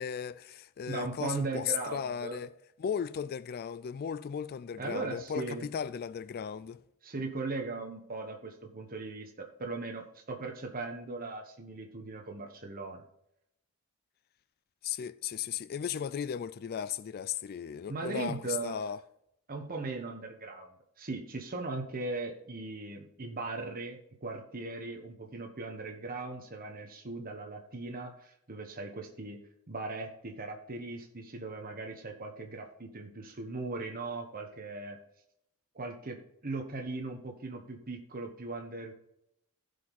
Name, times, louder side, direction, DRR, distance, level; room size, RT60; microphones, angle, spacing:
voice 1, 0.0-2.5 2.8-6.8 14.8-19.0, left 8 dB, 45° left, 0.3 m, -36 dB
voice 2, 0.9-2.4 4.8-5.7 7.0-13.0 17.9-18.8 19.5-20.7 21.0-29.4 29.7-35.0 35.7-38.9, right 3 dB, 40° right, 1.1 m, -38 dB
15.5 x 5.2 x 4.0 m
head